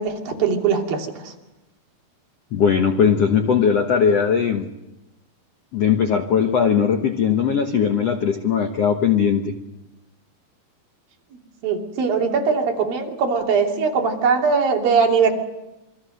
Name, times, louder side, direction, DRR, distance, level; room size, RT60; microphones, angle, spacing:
voice 1, 0.0-1.3 11.6-15.3, right 5 dB, 60° right, 1 dB, 4.5 m, -21 dB
voice 2, 2.5-4.7 5.7-9.6, left 7 dB, 75° left, 6 dB, 1.4 m, -19 dB
27.5 x 23.0 x 6.6 m, 0.97 s
omnidirectional pair, 4.9 m